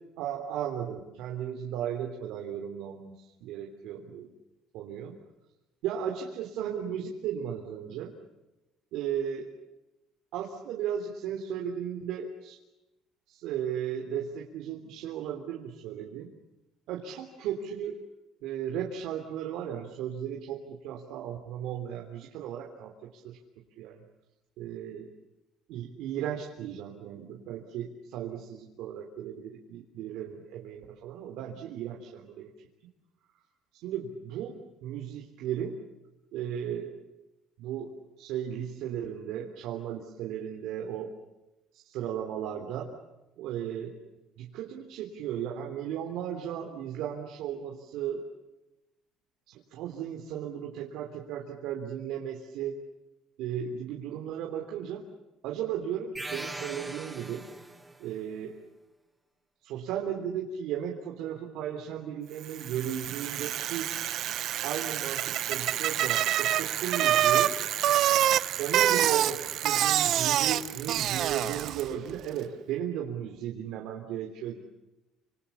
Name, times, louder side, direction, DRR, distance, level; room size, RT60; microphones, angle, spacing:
voice 1, 0.2-3.1 3.4-4.3 4.7-5.2 5.8-8.1 8.9-9.5 10.3-12.6 13.3-16.3 16.9-18.0 18.4-23.4 23.8-24.0 24.6-25.1 25.7-32.5 33.8-35.8 36.3-36.9 37.6-37.9 38.2-41.1 41.8-42.9 43.4-43.9 44.4-48.2 49.5-52.8 53.4-55.0 55.4-57.5 58.0-58.6 59.6-63.9 64.6-67.5 68.6-74.7, right 9 dB, 75° right, 0 dB, 3.5 m, -35 dB
sound 1, 56.1-58.0, right 2 dB, 10° right, 2.1 m, -39 dB
Bicycle, 62.5-71.9, right 12 dB, 55° right, 0.9 m, -27 dB
29.0 x 27.5 x 7.1 m, 1.0 s
cardioid pair, 160°, 0 cm